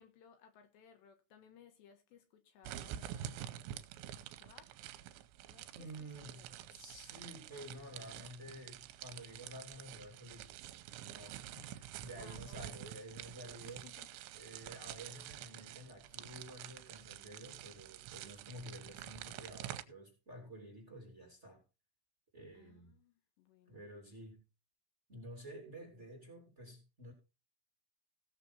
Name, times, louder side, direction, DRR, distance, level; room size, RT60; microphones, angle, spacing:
voice 1, 0.0-3.7 4.4-4.7 5.4-6.6 12.2-12.7 13.6-14.1 22.5-23.8, left 7 dB, 70° left, 3.4 m, -62 dB
sound 1, 2.6-19.8, right 12 dB, 80° right, 3.1 m, -48 dB
voice 2, 5.7-10.7 11.0-13.9 14.3-21.6 22.3-23.0 23.7-24.4 25.1-27.1, equal, 20° right, 2.6 m, -51 dB
17.0 x 6.8 x 4.2 m
omnidirectional pair, 5.5 m